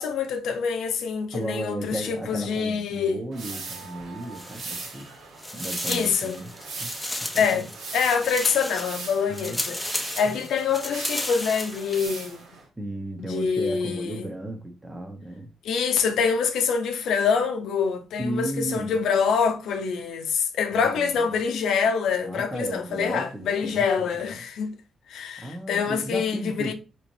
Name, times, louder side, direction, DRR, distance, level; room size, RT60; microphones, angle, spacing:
voice 1, 0.0-3.2 5.9-6.4 7.3-7.7 7.9-12.4 13.2-14.3 15.6-24.7 25.1-26.7, left 6 dB, 80° left, 0.7 m, -25 dB
voice 2, 1.3-5.1 5.5-6.9 7.2-7.7 9.3-9.7 10.2-10.5 12.8-15.5 18.2-19.0 20.7-21.4 22.2-24.4 25.4-26.7, right 1 dB, 20° right, 1.1 m, -35 dB
sound 1, 3.3-12.7, right 4 dB, 85° right, 1.3 m, -40 dB
sound 2, 4.2-5.1 5.4-12.1, left 1 dB, 10° left, 0.9 m, -34 dB
4.2 x 3.1 x 2.7 m
cardioid pair, 65°, 0 cm